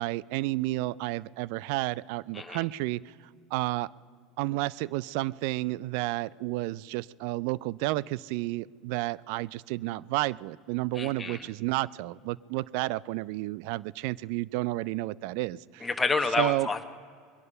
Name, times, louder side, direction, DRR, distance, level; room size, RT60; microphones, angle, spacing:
voice 1, 0.0-3.1 3.5-3.9 4.4-15.9 16.4-16.7, right 19 dB, 70° right, 23 dB, 0.3 m, -31 dB
voice 2, 11.0-11.4 15.8-16.8, left 3 dB, 15° left, 5 dB, 1.2 m, -29 dB
22.0 x 11.0 x 5.5 m, 2.1 s
hypercardioid pair, 85°, 0 cm